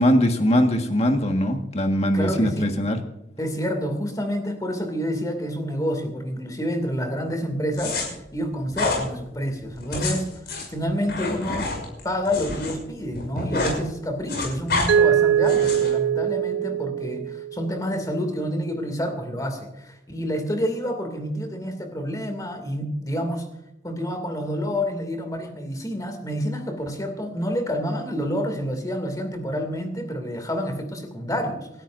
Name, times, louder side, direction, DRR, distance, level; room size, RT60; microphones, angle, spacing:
voice 1, 0.0-3.0, equal, 35° left, 4 dB, 1.6 m, -21 dB
voice 2, 2.1-2.7 3.4-10.3 10.7-11.7 12.0-23.4 23.8-31.7, equal, 20° left, 5 dB, 2.5 m, -28 dB
sound 1, 7.7-8.0 8.7-9.0 9.8-12.7 13.0-13.8 14.1-14.9 15.4-15.9, left 3 dB, 60° left, 5.9 m, -28 dB
Mallet percussion, 14.9-17.8, right 9 dB, 80° right, 0.9 m, -22 dB
29.0 x 13.0 x 2.6 m, 0.86 s
head